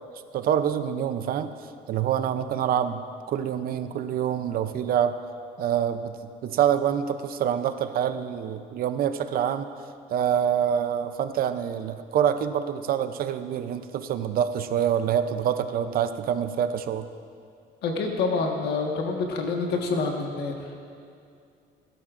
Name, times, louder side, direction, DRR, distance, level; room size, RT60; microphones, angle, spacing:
voice 1, 0.3-1.5 1.9-3.0 3.3-5.2 5.6-9.7 10.1-17.1, right 9 dB, 60° right, 10 dB, 0.6 m, -26 dB
voice 2, 17.8-20.8, left 4 dB, 75° left, 2 dB, 1.5 m, -27 dB
18.5 x 11.5 x 2.6 m, 2.4 s
cardioid pair, 110°, 17 cm